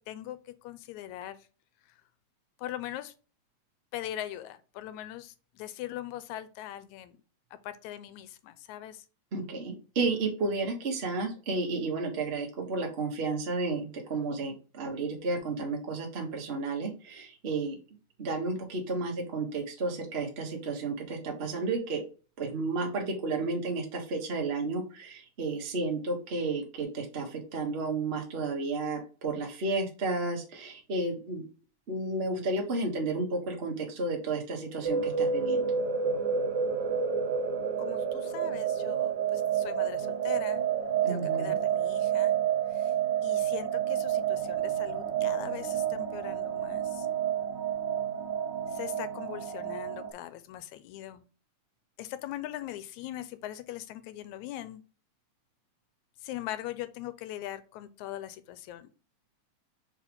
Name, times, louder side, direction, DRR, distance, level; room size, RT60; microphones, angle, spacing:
voice 1, 0.0-1.5 2.6-3.1 3.9-7.2 7.6-9.1 37.8-40.6 41.1-42.4 42.7-42.9 43.2-47.1 48.7-51.2 52.0-54.8 56.2-58.9, left 13 dB, 85° left, 13 dB, 2.0 m, -41 dB
voice 2, 9.3-17.8 18.2-22.0 22.4-31.4 31.9-35.7 41.0-41.6, right 3 dB, 35° right, 1 dB, 1.0 m, -32 dB
sound 1, 34.8-50.1, right 7 dB, 65° right, 1.1 m, -29 dB
4.9 x 4.5 x 5.3 m, 0.36 s
omnidirectional pair, 3.3 m